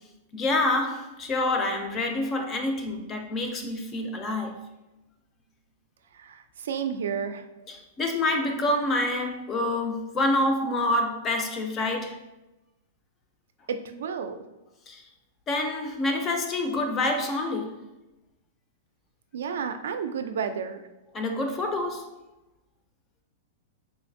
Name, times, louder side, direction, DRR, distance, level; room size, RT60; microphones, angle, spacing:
voice 1, 0.3-4.7 7.7-12.2 14.9-15.1 15.5-17.8 21.1-22.2, left 2 dB, 15° left, 0.3 m, -27 dB
voice 2, 6.1-7.5 13.7-14.4 19.3-20.8, right 7 dB, 85° right, 0.3 m, -31 dB
3.8 x 2.5 x 2.5 m
supercardioid pair, 175°, 0 cm